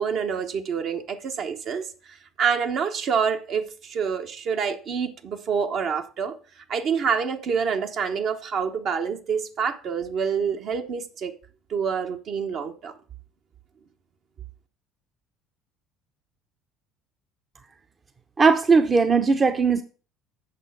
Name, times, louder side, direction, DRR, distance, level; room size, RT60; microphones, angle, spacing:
voice 1, 0.0-11.3 11.7-12.9, right 6 dB, 55° right, 1.1 m, -27 dB
voice 2, 18.4-19.8, right 4 dB, 30° right, 0.8 m, -18 dB
8.2 x 6.4 x 5.6 m
hypercardioid pair, 70°, 0 cm